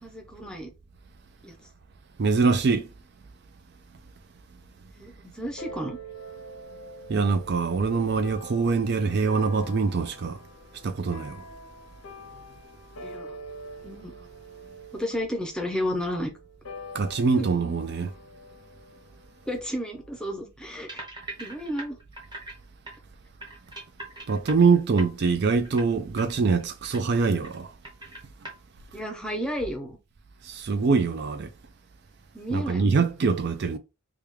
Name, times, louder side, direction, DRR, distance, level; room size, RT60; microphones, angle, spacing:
voice 1, 0.0-0.7 1.4-1.6 5.0-6.0 13.0-13.4 13.8-14.1 14.9-16.3 17.3-17.5 19.5-21.0 21.4-22.0 28.9-30.0 32.3-33.0, equal, 5° left, 0.6 m, -32 dB
voice 2, 2.2-2.9 7.1-10.4 10.8-11.5 16.9-18.1 24.3-27.7 30.4-31.5 32.5-33.8, right 4 dB, 50° right, 0.4 m, -24 dB
sound 1, 5.6-20.3, equal, 85° left, 0.7 m, -45 dB
sound 2, 20.9-22.6 22.9-23.0 23.4-25.3 25.6-25.9 26.2-26.3 26.6-27.6 27.8-28.5, right 1 dB, 20° right, 1.0 m, -40 dB
3.4 x 2.3 x 3.1 m
head